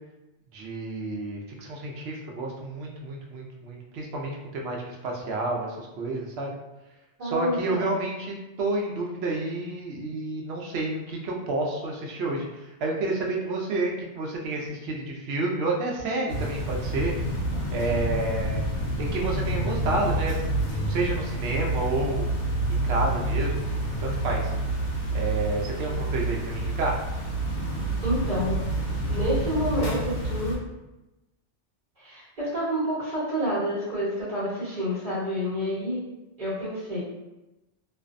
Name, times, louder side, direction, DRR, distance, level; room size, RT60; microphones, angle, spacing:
voice 1, 0.5-4.8 5.0-6.6 7.2-12.5 12.8-17.1 17.7-18.6 19.1-20.3 20.9-22.3 22.7-24.5 25.1-26.9, right 2 dB, 65° right, -1 dB, 0.8 m, -30 dB
voice 2, 7.2-7.9 28.0-28.6 29.1-30.6 32.0-36.0 36.4-37.0, equal, 40° right, -12 dB, 1.0 m, -28 dB
sound 1, 16.3-30.6, right 2 dB, 65° left, 0.8 m, -28 dB
2.5 x 2.1 x 2.4 m, 1.0 s
omnidirectional pair, 1.2 m